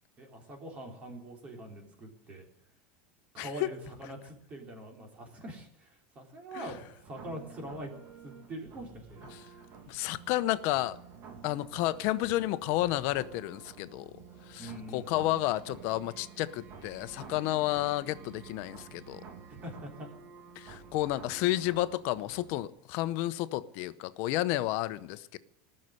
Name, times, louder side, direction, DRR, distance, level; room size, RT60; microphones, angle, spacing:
voice 1, 0.2-2.5 3.3-6.8 7.0-7.9 8.2-9.2 14.6-15.1 19.5-20.1, right 1 dB, 25° right, 3.6 m, -43 dB
voice 2, 3.4-3.7 6.5-6.7 9.3-9.4 9.9-11.0 11.4-14.2 14.5-19.2 20.6-25.4, left 16 dB, 50° left, 0.8 m, -31 dB
sound 1, 6.6-22.6, right 5 dB, 40° right, 2.3 m, -50 dB
18.5 x 6.6 x 9.8 m
supercardioid pair, 150°, 5 cm